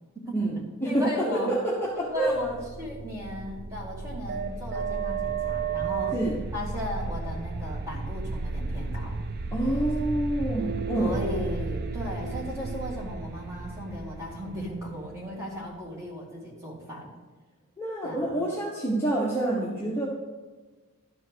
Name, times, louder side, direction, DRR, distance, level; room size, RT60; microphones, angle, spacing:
voice 1, 0.2-0.5 0.8-1.5 2.0-6.1 6.5-9.2 10.9-17.1 18.0-18.4, left 1 dB, 15° right, -4 dB, 2.1 m, -36 dB
voice 2, 0.8-2.4 6.1-6.4 9.5-11.2 17.8-20.1, right 1 dB, 10° left, -5 dB, 1.1 m, -27 dB
sound 1, 2.2-15.9, right 4 dB, 45° right, 0.5 m, -33 dB
12.0 x 4.5 x 6.3 m, 1.3 s
head